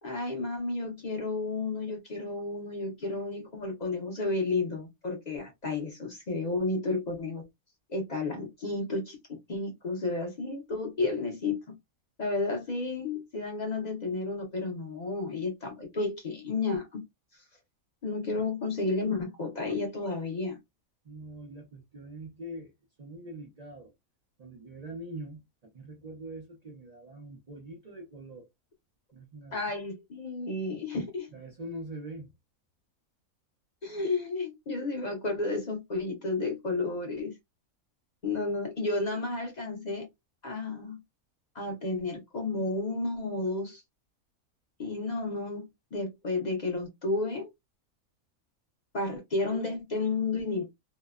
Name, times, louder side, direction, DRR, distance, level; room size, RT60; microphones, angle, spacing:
voice 1, 0.0-7.4 7.9-9.2 9.5-11.6 12.2-17.1 18.0-20.6 29.5-31.3 33.8-37.3 38.2-40.1 40.4-41.0 41.5-43.8 44.8-47.5 48.9-50.6, left 3 dB, 50° left, 0.5 m, -32 dB
voice 2, 21.0-22.7 23.0-23.9 24.4-28.5 29.1-29.6 31.3-32.3, right 1 dB, 60° right, 0.4 m, -43 dB
2.8 x 2.1 x 2.3 m
omnidirectional pair, 1.5 m